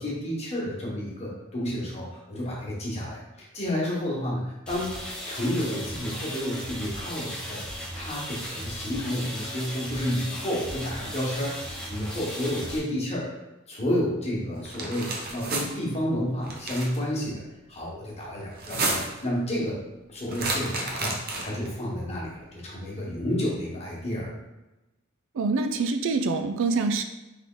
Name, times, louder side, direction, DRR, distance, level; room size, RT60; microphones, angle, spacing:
voice 1, 0.0-4.9 5.3-13.2 13.7-17.4 17.7-19.8 20.1-24.3, left 1 dB, 30° left, -4 dB, 1.2 m, -30 dB
sound 1, 4.7-12.8, equal, 5° left, 0.9 m, -37 dB
sound 2, 14.6-15.7 16.4-17.0 18.5-19.2 20.3-21.7, right 3 dB, 45° right, 0.8 m, -30 dB
voice 2, 25.4-27.0, right 4 dB, 65° right, 7 dB, 0.4 m, -25 dB
3.6 x 3.4 x 3.8 m, 1.0 s
head